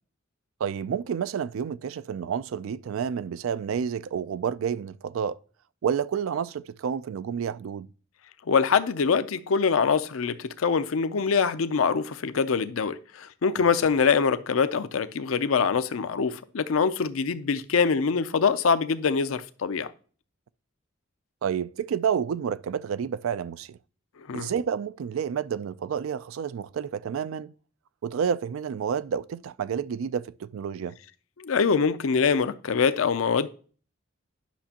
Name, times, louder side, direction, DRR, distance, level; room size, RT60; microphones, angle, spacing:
voice 1, 0.6-5.4 5.8-7.9 21.4-23.8 24.3-27.5 28.0-31.0, right 7 dB, 85° right, 0.3 m, -29 dB
voice 2, 8.5-19.9 24.3-24.5 31.4-33.5, left 5 dB, 90° left, 0.5 m, -24 dB
10.0 x 5.9 x 2.8 m
head